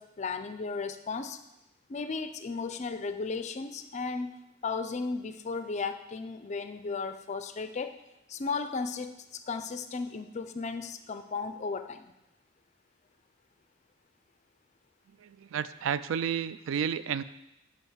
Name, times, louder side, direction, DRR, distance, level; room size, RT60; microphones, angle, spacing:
voice 1, 0.0-1.4 1.9-4.3 4.6-7.9 8.3-12.1, left 4 dB, 35° left, 9 dB, 0.4 m, -35 dB
voice 2, 15.2-17.2, right 8 dB, 70° right, 15 dB, 0.3 m, -31 dB
5.5 x 5.1 x 6.3 m, 0.93 s
head